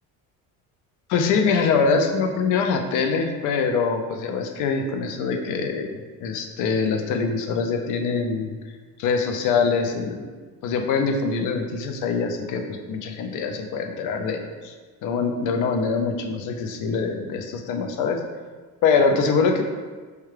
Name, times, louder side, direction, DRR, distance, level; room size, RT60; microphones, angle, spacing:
voice 1, 1.1-8.5 9.0-10.2 10.6-14.7 15.0-18.2 18.8-19.6, left 5 dB, 65° left, 4 dB, 0.6 m, -24 dB
4.7 x 2.2 x 3.2 m, 1.4 s
cardioid pair, 140°, 33 cm